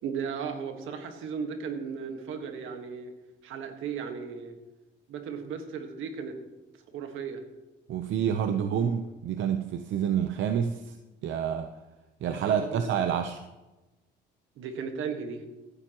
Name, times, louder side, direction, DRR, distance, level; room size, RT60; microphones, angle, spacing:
voice 1, 0.0-3.1 3.4-4.5 5.1-6.4 6.9-7.4 8.6-8.7 12.4-12.8 14.6-15.4, right 6 dB, 85° right, 6 dB, 1.5 m, -36 dB
voice 2, 7.9-11.0 11.2-11.7 12.2-13.4, right 8 dB, 70° right, 7 dB, 0.7 m, -28 dB
15.5 x 11.5 x 3.0 m, 1.1 s
cardioid pair, 90°, 20 cm